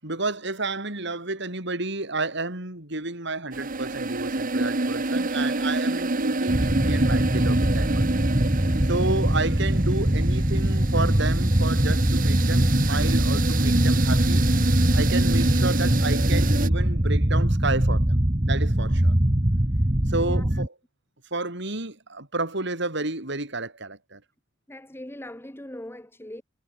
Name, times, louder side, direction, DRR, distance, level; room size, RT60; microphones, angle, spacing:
voice 1, 0.0-8.2 8.8-14.5 14.9-19.1 20.1-20.8 21.3-24.2, right 2 dB, 65° right, 5.7 m, -31 dB
sound 1, 3.5-16.7, right 2 dB, 45° right, 1.4 m, -27 dB
sound 2, 6.5-20.7, right 1 dB, 25° right, 1.6 m, -22 dB
voice 2, 24.7-26.4, left 1 dB, 10° left, 2.5 m, -40 dB
head